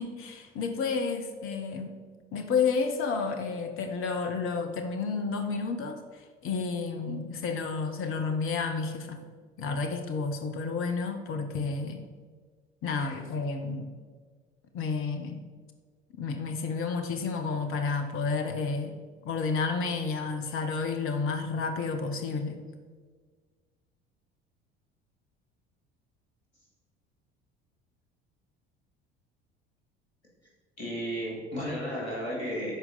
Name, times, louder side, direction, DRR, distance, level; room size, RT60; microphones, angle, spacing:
voice 1, 0.0-1.9 2.3-9.2 9.6-12.1 12.8-13.9 14.7-15.4 16.2-19.0 19.2-22.6, left 4 dB, 40° left, 6 dB, 1.0 m, -31 dB
voice 2, 30.8-32.8, equal, 80° left, -5 dB, 2.6 m, -33 dB
12.0 x 4.6 x 3.9 m, 1.5 s
figure-of-eight pair, 60°, 33 cm